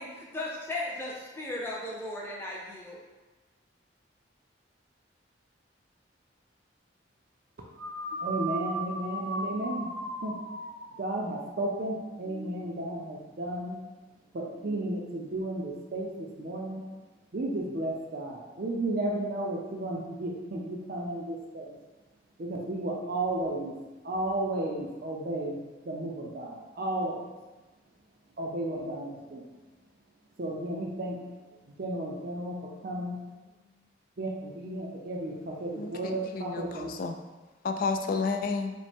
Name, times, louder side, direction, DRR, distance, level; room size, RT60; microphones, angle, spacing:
voice 1, 0.0-3.0 33.1-33.5, left 1 dB, 10° left, -4 dB, 0.7 m, -37 dB
sound 1, 7.8-12.3, right 2 dB, 90° right, 0.7 m, -37 dB
voice 2, 8.2-9.9 10.2-10.4 11.0-13.8 14.3-16.8 17.3-21.7 22.4-23.8 24.0-25.6 25.9-27.2 28.4-29.4 30.4-31.2 31.8-32.6 32.8-33.2 34.2-36.9, right 1 dB, 50° right, -2 dB, 0.5 m, -33 dB
voice 3, 35.8-37.1 37.6-38.7, left 4 dB, 45° left, 6 dB, 0.3 m, -31 dB
5.0 x 2.1 x 3.5 m, 1.2 s
head